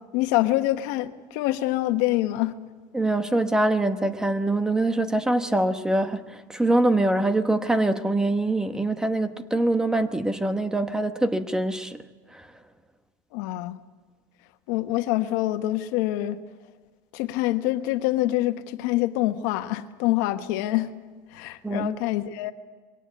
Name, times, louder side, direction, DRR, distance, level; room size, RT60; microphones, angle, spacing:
voice 1, 0.1-2.5 13.3-13.8 14.7-16.4 17.1-20.9 21.3-22.5, left 16 dB, 80° left, 8 dB, 1.3 m, -25 dB
voice 2, 2.9-12.0 12.3-12.5 21.6-21.9, right 2 dB, 5° right, 9 dB, 1.1 m, -24 dB
22.5 x 18.0 x 8.5 m, 1.4 s
cardioid pair, 145°, 10 cm